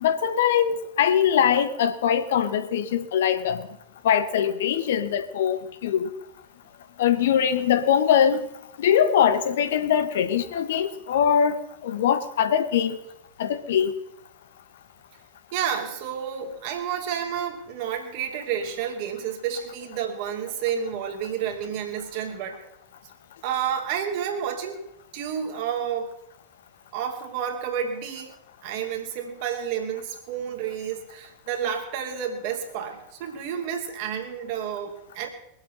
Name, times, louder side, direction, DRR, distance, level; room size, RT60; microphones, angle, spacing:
voice 1, 0.0-3.6 4.0-6.1 7.0-8.5 8.8-13.0 13.4-13.9, left 8 dB, 60° left, 1.1 m, -22 dB
voice 2, 15.5-22.6 23.4-24.9 25.1-26.1 26.9-28.3 28.6-35.3, right 8 dB, 45° right, 2.6 m, -30 dB
22.0 x 8.1 x 5.6 m
figure-of-eight pair, 90°, 0 cm